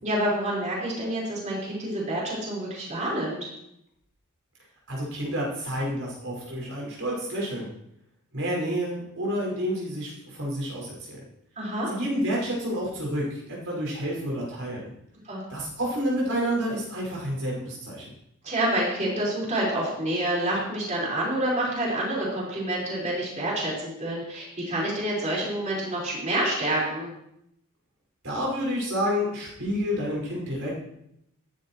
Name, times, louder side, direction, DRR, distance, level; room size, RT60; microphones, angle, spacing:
voice 1, 0.0-3.5 11.6-11.9 15.2-15.4 18.4-27.1, right 1 dB, 35° right, -5 dB, 4.6 m, -28 dB
voice 2, 4.9-7.7 8.3-11.2 11.9-14.9 15.5-18.1 28.2-30.7, equal, 70° right, -3 dB, 5.5 m, -29 dB
14.5 x 11.0 x 3.1 m, 0.77 s
head